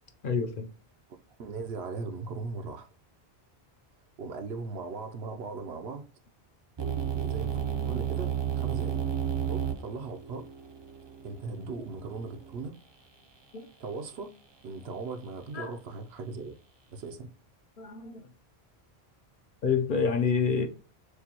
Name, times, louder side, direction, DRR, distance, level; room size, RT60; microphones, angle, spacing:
voice 1, 0.2-0.7 13.5-13.7 15.5-15.7 17.8-18.2 19.6-20.7, left 5 dB, 60° left, 0.8 m, -27 dB
voice 2, 1.4-2.9 4.2-6.1 7.1-7.6 7.9-9.0 9.5-10.5 11.2-12.8 13.8-14.3 14.6-16.6 16.9-17.3, right 4 dB, 80° right, 1.0 m, -38 dB
sound 1, 6.8-12.7, right 9 dB, 35° right, 0.4 m, -32 dB
6.7 x 2.2 x 2.9 m
omnidirectional pair, 1.1 m